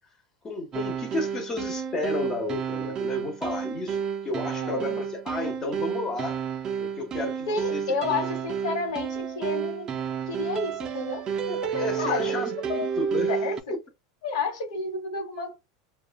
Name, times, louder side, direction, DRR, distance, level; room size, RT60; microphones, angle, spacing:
voice 1, 0.4-6.4 6.8-7.8 11.5-12.5 13.0-13.3, left 2 dB, 20° left, 0.8 m, -32 dB
sound 1, 0.7-13.6, right 7 dB, 25° right, 0.4 m, -31 dB
voice 2, 4.5-5.0 7.5-9.9 10.3-11.3 11.6-12.9 13.3-13.7 14.2-15.5, left 4 dB, 75° left, 1.1 m, -31 dB
3.0 x 2.2 x 2.2 m
supercardioid pair, 140°, 3 cm